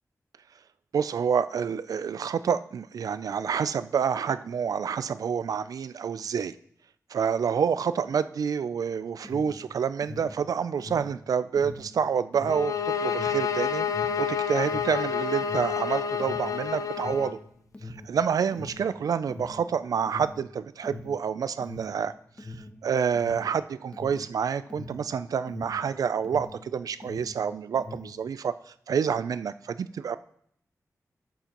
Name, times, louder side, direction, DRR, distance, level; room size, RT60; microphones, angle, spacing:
voice 1, 0.9-6.5 7.1-13.9 14.2-17.4 18.1-22.1 22.8-28.5 28.9-30.2, right 7 dB, 85° right, 14 dB, 0.4 m, -28 dB
Alarm, 9.1-26.7 26.9-28.2, left 2 dB, 20° left, 0.9 m, -43 dB
sound 1, 12.5-17.4, left 7 dB, 70° left, 0.5 m, -29 dB
13.0 x 7.2 x 2.9 m, 0.67 s
wide cardioid pair, 135°, 6 cm